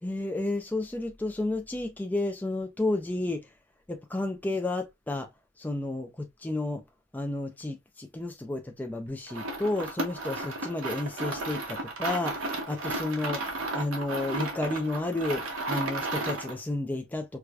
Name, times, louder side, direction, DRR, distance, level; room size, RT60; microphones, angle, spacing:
voice 1, 0.0-3.5 3.9-5.3 5.6-6.8 7.1-17.4, left 2 dB, 10° left, 0.3 m, -32 dB
sound 1, 9.3-16.6, right 2 dB, 85° right, 1.0 m, -33 dB
4.6 x 2.2 x 2.3 m
head